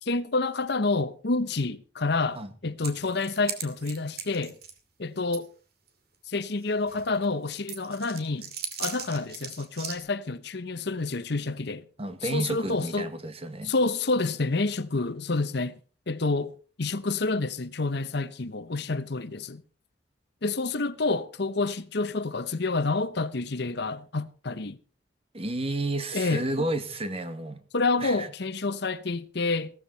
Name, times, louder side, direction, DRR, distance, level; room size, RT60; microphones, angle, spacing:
voice 1, 0.0-4.6 5.0-5.5 6.3-8.5 8.8-11.9 12.2-13.1 13.6-15.7 16.1-16.5 16.8-19.6 20.4-24.8 26.1-26.7 27.7-29.7, left 3 dB, 60° left, 0.9 m, -28 dB
sound 1, 2.8-4.8 5.3-5.4 5.9-6.0 6.6-7.3 7.7-10.0, right 7 dB, 55° right, 2.5 m, -38 dB
voice 2, 12.0-13.7 25.3-27.6 28.0-28.3, right 2 dB, 30° right, 1.5 m, -31 dB
16.5 x 14.0 x 4.1 m
head